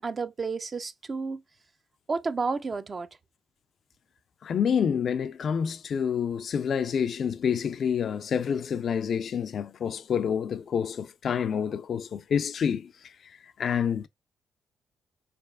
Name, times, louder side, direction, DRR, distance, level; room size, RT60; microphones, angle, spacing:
voice 1, 0.0-1.4 2.1-3.1, right 4 dB, 35° right, 0.4 m, -31 dB
voice 2, 4.4-12.9 13.6-14.1, left 7 dB, 55° left, 0.3 m, -28 dB
4.0 x 3.3 x 2.3 m
cardioid pair, 90°, 0 cm